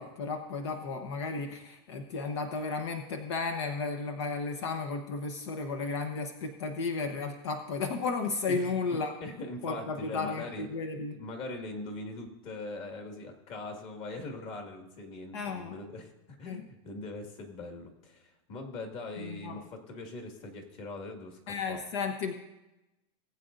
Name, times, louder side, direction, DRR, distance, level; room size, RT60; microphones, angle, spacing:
voice 1, 0.0-9.1 9.6-11.2 15.3-15.8 16.5-16.6 19.2-19.6 21.5-22.3, left 4 dB, 80° left, 6 dB, 1.0 m, -34 dB
voice 2, 9.2-10.7 11.1-16.1 16.4-21.8, left 2 dB, 40° left, 3 dB, 2.0 m, -41 dB
19.5 x 8.3 x 2.6 m, 0.97 s
supercardioid pair, 145°, 14 cm